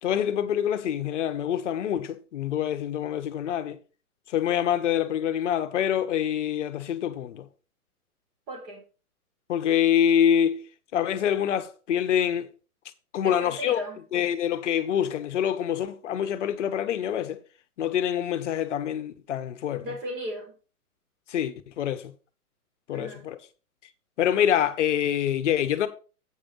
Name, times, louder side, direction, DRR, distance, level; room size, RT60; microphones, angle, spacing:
voice 1, 0.0-3.8 4.3-7.5 9.5-10.6 10.9-12.5 13.1-13.8 14.1-17.4 17.8-19.9 21.3-22.1 22.9-23.4 24.2-25.9, left 9 dB, 50° left, 1.1 m, -26 dB
voice 2, 8.5-8.8 13.2-14.0 19.8-20.6 22.9-23.3, equal, 30° right, 3.7 m, -36 dB
8.4 x 5.2 x 5.4 m
hypercardioid pair, 140°, 45 cm